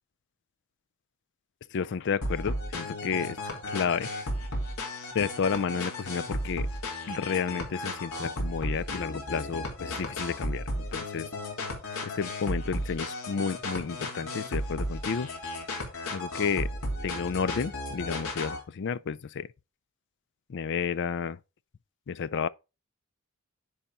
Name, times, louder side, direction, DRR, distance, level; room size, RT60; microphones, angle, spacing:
voice 1, 1.7-3.4 3.7-4.1 5.1-6.7 7.1-11.3 12.0-15.3 16.1-16.7 17.0-19.5 20.5-21.4 22.1-22.5, left 6 dB, 55° left, 0.4 m, -31 dB
sound 1, 2.2-18.6, left 1 dB, 85° left, 3.0 m, -34 dB
10.0 x 4.2 x 5.2 m
head